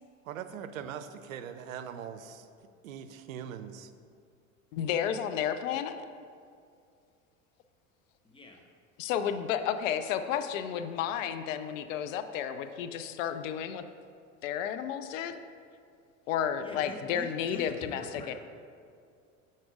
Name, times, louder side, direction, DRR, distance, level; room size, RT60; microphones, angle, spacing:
voice 1, 0.3-2.4 2.8-3.9, right 8 dB, 85° right, 10 dB, 0.5 m, -41 dB
voice 2, 4.7-6.0 9.0-13.8 14.4-15.4 16.3-18.3, left 9 dB, 75° left, 9 dB, 0.5 m, -32 dB
voice 3, 8.2-8.6 16.6-18.3, left 2 dB, 15° left, 1 dB, 1.0 m, -44 dB
6.4 x 4.2 x 4.7 m, 2.3 s
hypercardioid pair, 85°, 39 cm